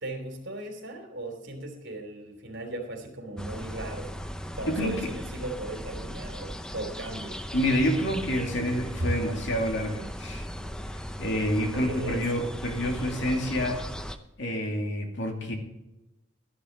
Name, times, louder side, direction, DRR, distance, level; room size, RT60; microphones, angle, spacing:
voice 1, 0.0-4.1 4.6-7.4 9.0-9.1 11.7-12.2, right 1 dB, 65° right, 4 dB, 3.0 m, -37 dB
sound 1, 3.4-14.2, equal, 5° left, 0.7 m, -37 dB
voice 2, 4.7-5.1 7.5-10.5 11.2-13.8 14.4-15.5, equal, 65° left, 3 dB, 2.5 m, -28 dB
13.0 x 11.0 x 4.0 m, 0.92 s
head